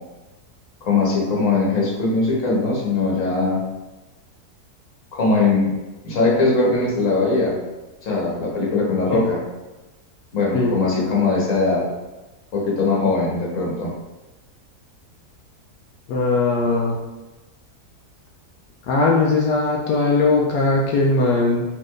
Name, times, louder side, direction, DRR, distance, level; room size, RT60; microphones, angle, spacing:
voice 1, 0.8-3.6 5.1-5.7 6.0-7.5 8.0-9.4 10.3-11.8 12.5-13.9, left 3 dB, 55° left, -4 dB, 1.6 m, -20 dB
voice 2, 16.1-17.0 18.9-21.6, left 3 dB, 85° left, -2 dB, 1.2 m, -19 dB
4.3 x 3.3 x 3.1 m, 1.1 s
omnidirectional pair, 1.7 m